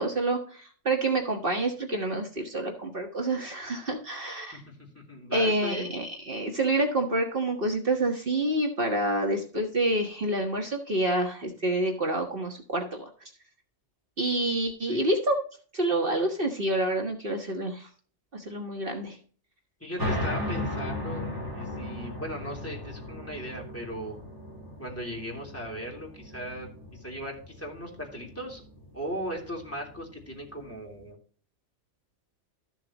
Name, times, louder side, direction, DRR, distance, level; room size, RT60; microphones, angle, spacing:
voice 1, 0.0-4.6 5.3-13.1 14.2-15.4 15.7-17.9 18.3-19.2, right 1 dB, 55° right, 2 dB, 1.7 m, -28 dB
voice 2, 4.9-5.9 14.8-15.0 19.8-24.2 24.8-28.6 28.9-31.2, equal, 10° left, 0 dB, 3.4 m, -38 dB
sound 1, 20.0-31.1, left 1 dB, 15° right, 3.2 m, -37 dB
14.0 x 7.2 x 3.0 m, 0.43 s
omnidirectional pair, 1.2 m